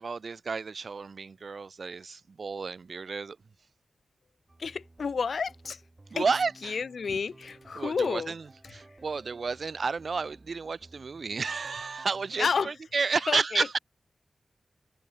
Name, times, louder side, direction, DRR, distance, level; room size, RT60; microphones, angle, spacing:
voice 1, 0.0-3.4 6.1-6.8 7.1-7.2 7.7-13.8, right 4 dB, 65° right, 0.3 m, -31 dB
sound 1, 4.5-12.7, right 2 dB, 30° right, 7.3 m, -55 dB
voice 2, 4.6-5.8 6.2-6.3 6.6-8.3 12.4-12.7 13.3-13.7, left 5 dB, 75° left, 0.3 m, -30 dB
open air
cardioid pair, 50°, 0 cm